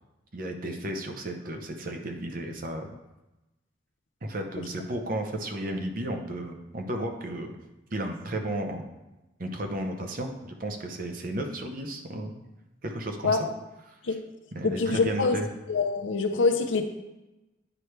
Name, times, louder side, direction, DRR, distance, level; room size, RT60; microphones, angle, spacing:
voice 1, 0.3-2.9 4.2-7.6 7.9-8.8 9.4-12.4 12.8-13.5 13.9-14.2 14.5-15.5, right 1 dB, 45° right, 4 dB, 0.8 m, -33 dB
voice 2, 14.6-15.4 15.7-16.8, left 4 dB, 85° left, 6 dB, 0.7 m, -25 dB
9.8 x 4.5 x 3.3 m, 1.0 s
head